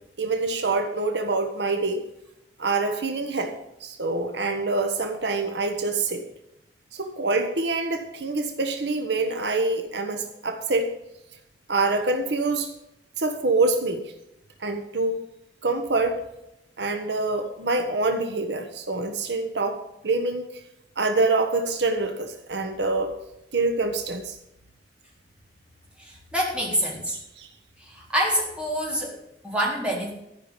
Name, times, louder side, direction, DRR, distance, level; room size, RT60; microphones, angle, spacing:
voice 1, 0.2-2.1 2.6-3.5 3.8-6.2 6.9-10.9 11.7-12.7 13.2-14.0 14.6-15.2 15.6-16.2 16.8-20.4 21.0-23.1 23.5-24.4 27.4-27.5, right 3 dB, 70° right, 6 dB, 1.2 m, -25 dB
voice 2, 26.0-27.2 27.8-29.2 29.4-30.1, equal, 5° right, -3 dB, 3.8 m, -26 dB
13.5 x 5.6 x 9.1 m, 0.85 s
head